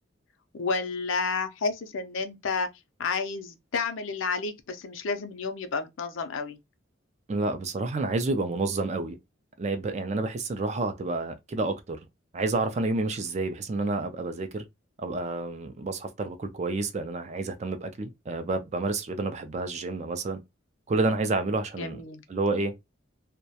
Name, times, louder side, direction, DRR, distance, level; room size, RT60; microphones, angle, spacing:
voice 1, 0.5-2.7 3.0-6.6 21.8-22.2, left 4 dB, 75° left, 0.5 m, -30 dB
voice 2, 7.3-9.2 9.6-12.0 12.3-14.6 15.0-20.4 20.9-22.0 22.3-22.7, right 3 dB, 35° right, 0.3 m, -29 dB
2.3 x 2.1 x 2.7 m
head